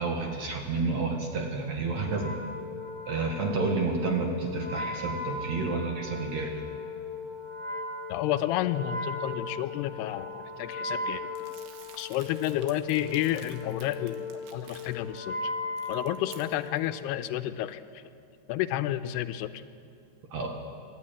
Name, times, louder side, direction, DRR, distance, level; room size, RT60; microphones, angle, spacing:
voice 1, 0.0-2.4 3.1-6.5 20.3-20.5, right 3 dB, 55° right, 2 dB, 2.2 m, -30 dB
Wind instrument woodwind instrument, 2.1-16.8, left 3 dB, 15° left, 0.8 m, -37 dB
voice 2, 8.1-11.3 12.0-15.5 15.9-18.0 18.5-19.6, left 13 dB, 85° left, 11 dB, 2.7 m, -31 dB
Crumpling crinkling, 11.4-15.2 15.6-16.9, right 8 dB, 85° right, 3.5 m, -52 dB
25.5 x 12.5 x 8.7 m, 2.4 s
omnidirectional pair, 4.7 m